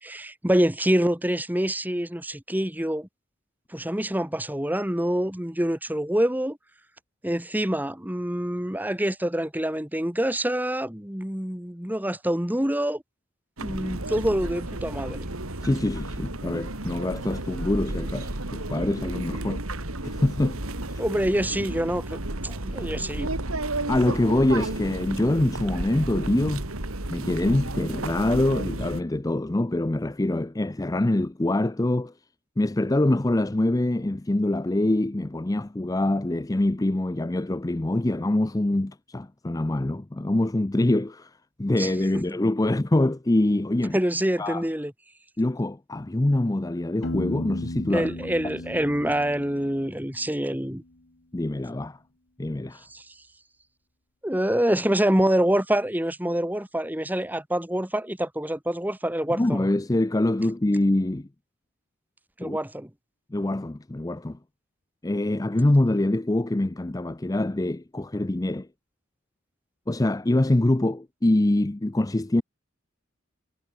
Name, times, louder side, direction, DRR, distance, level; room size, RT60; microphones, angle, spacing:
voice 1, 0.0-3.1 3.7-6.6 7.2-13.0 13.6-15.3 21.0-23.3 41.8-42.2 43.9-44.9 47.9-50.8 52.9-53.0 54.2-59.7 62.4-62.9, right 1 dB, 10° right, 1.4 m, -26 dB
sound 1, 13.6-29.0, right 2 dB, 85° right, 3.2 m, -32 dB
voice 2, 15.6-19.6 20.0-20.6 20.9-21.0 23.9-26.7 27.1-32.1 32.6-41.3 41.6-44.0 44.4-44.7 45.4-48.1 51.3-52.0 52.4-52.8 59.3-61.3 62.4-62.6 63.3-64.4 65.0-68.7 69.9-72.4, left 1 dB, 15° left, 0.5 m, -24 dB
Piano, 47.0-50.7, left 1 dB, 60° left, 1.8 m, -35 dB
head